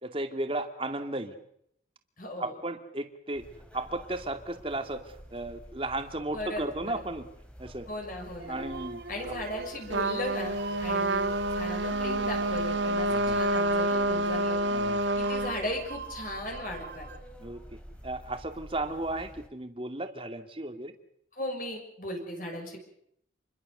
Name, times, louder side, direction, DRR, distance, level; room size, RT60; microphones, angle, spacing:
voice 1, 0.0-1.3 2.4-3.4 3.7-7.3 7.6-7.9 8.5-9.3 13.1-13.4 14.7-15.0 17.4-17.6 18.0-20.9, right 2 dB, 30° right, 7 dB, 2.3 m, -35 dB
voice 2, 2.2-2.6 6.3-6.6 6.9-7.0 7.9-8.6 9.1-14.6 15.2-17.1 21.4-22.8, left 1 dB, 45° left, 2 dB, 6.2 m, -37 dB
sound 1, 3.3-19.5, equal, 5° left, 3.3 m, -49 dB
sound 2, 8.4-17.2, right 3 dB, 60° right, 2.5 m, -43 dB
Trumpet, 9.9-15.5, right 1 dB, 75° right, 1.7 m, -28 dB
28.5 x 22.5 x 6.8 m, 0.73 s
head